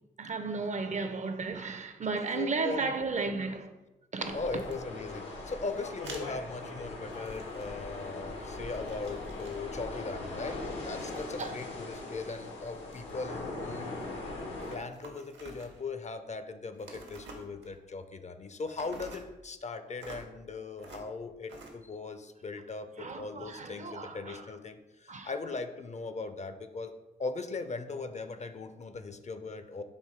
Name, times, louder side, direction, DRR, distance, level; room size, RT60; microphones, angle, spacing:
voice 1, 0.2-3.7 4.1-4.4 11.4-11.5 23.0-24.4 25.1-25.3, right 4 dB, 40° right, 0.5 m, -34 dB
voice 2, 2.1-2.9 4.3-14.0 14.7-26.9 27.2-29.8, left 3 dB, 40° left, 0.4 m, -39 dB
sound 1, 4.2-14.8, left 2 dB, 85° left, 0.8 m, -40 dB
sound 2, 4.6-4.7 6.0-6.2 7.1-8.1 8.4-9.7 10.9-11.6 12.0-13.1 14.4-15.9 16.7-17.8 18.7-19.3 20.0-20.3 20.8-21.1 21.5-21.7, right 2 dB, 75° right, 0.8 m, -49 dB
4.4 x 2.7 x 3.6 m
supercardioid pair, 45°, 19 cm